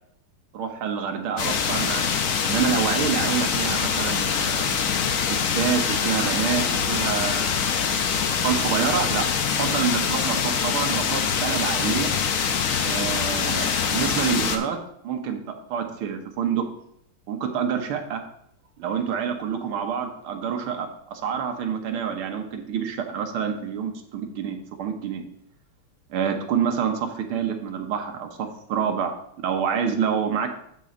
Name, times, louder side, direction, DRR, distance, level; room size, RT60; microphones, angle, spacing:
voice 1, 0.5-2.1 2.5-4.7 5.3-7.7 8.4-9.3 9.5-12.1 12.8-14.8 15.0-16.7 17.3-18.2 18.8-25.2 26.1-29.1 29.4-30.6, right 7 dB, 80° right, 4 dB, 1.8 m, -27 dB
sound 1, 1.4-14.6, left 6 dB, 70° left, 0.8 m, -24 dB
12.5 x 4.2 x 3.8 m, 0.72 s
omnidirectional pair, 2.3 m